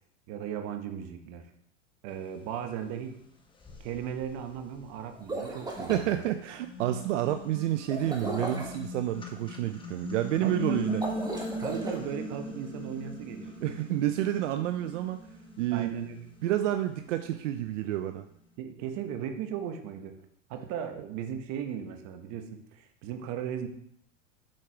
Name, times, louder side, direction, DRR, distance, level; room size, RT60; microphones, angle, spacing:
voice 1, 0.3-1.5 2.0-3.2 3.8-6.2 10.4-10.9 11.6-13.6 15.7-16.2 18.6-20.2 20.5-23.7, right 8 dB, 45° right, 7 dB, 1.2 m, -37 dB
sound 1, 2.9-3.0 3.5-5.9 6.4-17.7, left 1 dB, 15° left, 1.1 m, -40 dB
sound 2, 5.1-6.0 7.9-8.8 10.9-12.0, right 2 dB, 10° right, 1.7 m, -35 dB
voice 2, 5.9-11.0 13.6-15.2 15.6-15.9 16.4-18.3, right 13 dB, 75° right, 8 dB, 0.6 m, -29 dB
7.6 x 4.7 x 4.6 m, 0.70 s
hypercardioid pair, 115°, 37 cm